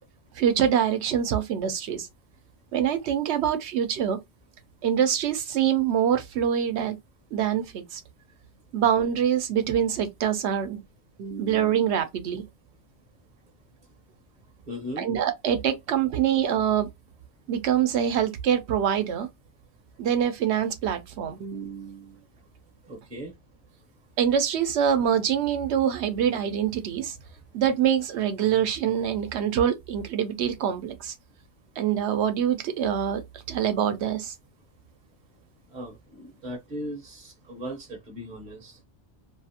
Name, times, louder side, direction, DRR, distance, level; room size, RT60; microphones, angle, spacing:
voice 1, 0.3-2.1 2.7-4.2 4.8-7.0 7.3-8.0 8.7-10.8 11.2-12.4 15.0-16.9 17.5-19.3 20.0-22.1 24.2-27.2 27.5-31.1 31.8-33.2 33.5-34.3, right 9 dB, 75° right, 0.9 m, -25 dB
voice 2, 14.7-15.1 22.9-23.3 35.7-38.8, equal, 45° right, 0.9 m, -38 dB
2.7 x 2.4 x 2.7 m
omnidirectional pair, 1.2 m